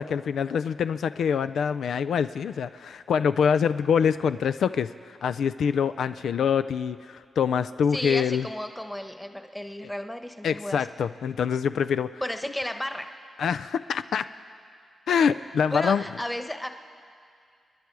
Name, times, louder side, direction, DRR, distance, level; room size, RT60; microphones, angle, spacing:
voice 1, 0.0-8.5 10.4-12.2 13.4-14.3 15.1-16.0, left 7 dB, 80° left, 11 dB, 0.3 m, -25 dB
voice 2, 7.9-10.9 12.2-13.1 15.7-16.7, left 1 dB, 10° left, 7 dB, 1.1 m, -33 dB
30.0 x 10.0 x 4.7 m, 2.3 s
cardioid pair, 65°, 0 cm